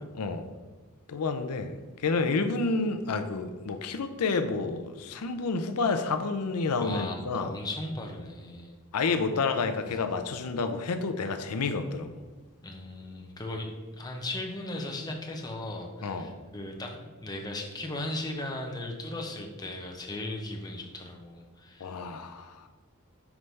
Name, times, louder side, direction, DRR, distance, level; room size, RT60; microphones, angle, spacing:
voice 1, 0.1-0.5 1.1-1.7 2.0-7.5 8.9-12.2 16.0-16.3 21.8-22.7, left 4 dB, 85° left, 8 dB, 0.5 m, -29 dB
voice 2, 6.8-8.7 9.8-10.0 12.6-13.7 14.0-22.0, left 1 dB, 20° left, 1 dB, 0.8 m, -37 dB
5.9 x 3.2 x 5.3 m, 1.3 s
head